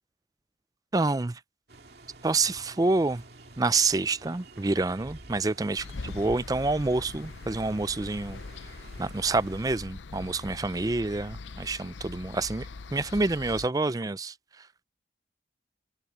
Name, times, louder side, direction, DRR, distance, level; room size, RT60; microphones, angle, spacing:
voice 1, 0.9-1.4 2.2-3.2 3.6-8.4 9.0-14.3, right 3 dB, 20° right, 0.4 m, -27 dB
sound 1, 1.7-9.8, right 2 dB, 60° right, 2.4 m, -49 dB
sound 2, 5.8-13.7, left 3 dB, 80° left, 0.6 m, -42 dB
open air
head